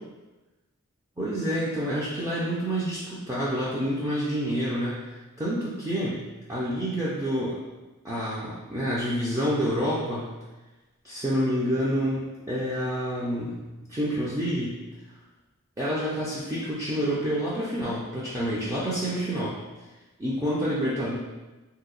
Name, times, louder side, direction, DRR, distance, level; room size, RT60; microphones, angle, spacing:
voice 1, 1.2-6.2 6.5-7.6 8.0-10.3 11.0-13.6 13.9-14.8 15.8-19.6 20.2-21.2, equal, 15° right, -8 dB, 0.4 m, -28 dB
2.8 x 2.1 x 3.8 m, 1.1 s
head